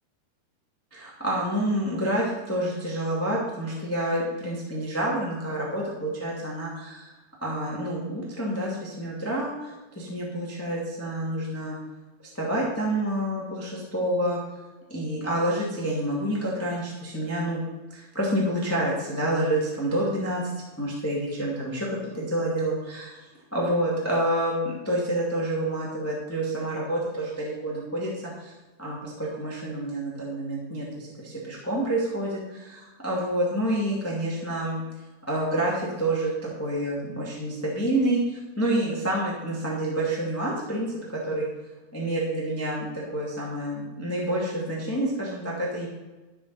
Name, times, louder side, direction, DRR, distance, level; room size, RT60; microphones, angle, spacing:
voice 1, 0.9-7.1 7.4-11.8 12.3-14.4 14.9-17.6 17.9-20.5 20.8-23.1 23.5-28.1 28.4-28.5 28.8-34.8 35.3-36.3 36.6-41.0 41.3-41.5 41.9-45.9, right 1 dB, 5° left, -5 dB, 1.4 m, -28 dB
12.5 x 7.2 x 4.2 m, 1.2 s
omnidirectional pair, 4.6 m